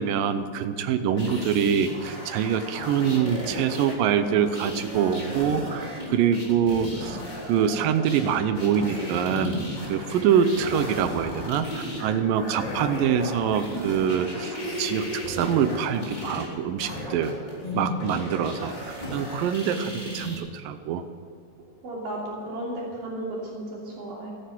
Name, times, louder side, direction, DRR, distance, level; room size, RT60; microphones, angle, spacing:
voice 1, 0.0-7.2 7.5-17.3 17.7-21.0, right 8 dB, 85° right, 10 dB, 2.5 m, -25 dB
sound 1, 1.2-20.4, left 1 dB, 15° left, 3.0 m, -35 dB
voice 2, 21.8-24.3, right 1 dB, 70° right, -4 dB, 4.5 m, -34 dB
14.5 x 9.8 x 7.7 m, 2.2 s
omnidirectional pair, 4.0 m